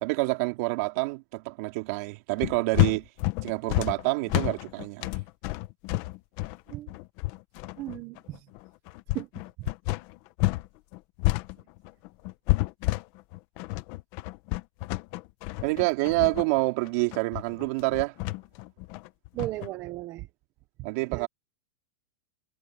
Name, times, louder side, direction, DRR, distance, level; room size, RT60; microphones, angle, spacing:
voice 1, 0.0-3.0 3.4-5.1 15.6-18.1 20.8-21.3, right 24 dB, 50° right, 3.3 m, -27 dB
sound 1, 2.4-10.7 10.9-19.7, left 20 dB, 40° left, 1.1 m, -29 dB
voice 2, 7.8-8.4 9.1-9.3 19.3-20.3 21.1-21.3, right 16 dB, 30° right, 1.1 m, -35 dB
supercardioid pair, 165°, 10 cm